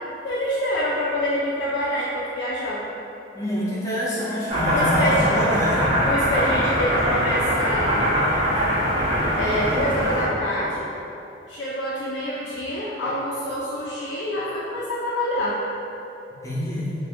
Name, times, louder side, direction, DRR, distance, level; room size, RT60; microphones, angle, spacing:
voice 1, 0.2-2.9 4.7-5.3 6.0-8.1 9.4-10.9 11.5-15.6, equal, 70° left, -6 dB, 0.3 m, -26 dB
voice 2, 3.3-6.0 16.4-16.9, equal, 15° left, -8 dB, 0.6 m, -25 dB
sound 1, 4.5-10.3, equal, 30° right, 0.5 m, -22 dB
2.5 x 2.5 x 3.5 m, 2.9 s
head